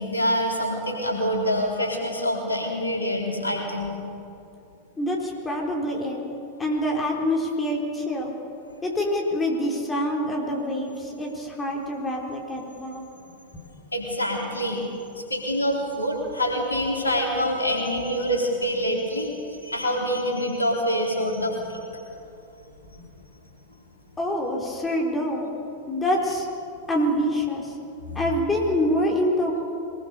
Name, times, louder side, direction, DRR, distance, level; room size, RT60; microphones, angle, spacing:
voice 1, 0.0-3.9 13.9-14.8 15.2-19.3 19.6-22.0 28.1-28.2, equal, 80° left, 0 dB, 4.0 m, -26 dB
voice 2, 5.0-6.2 6.6-8.3 8.8-13.0 24.2-25.5 25.9-26.5 26.9-27.7 28.2-29.7, left 1 dB, 15° left, -1 dB, 4.0 m, -26 dB
23.0 x 21.0 x 6.9 m, 2.6 s
figure-of-eight pair, 90°, 0 cm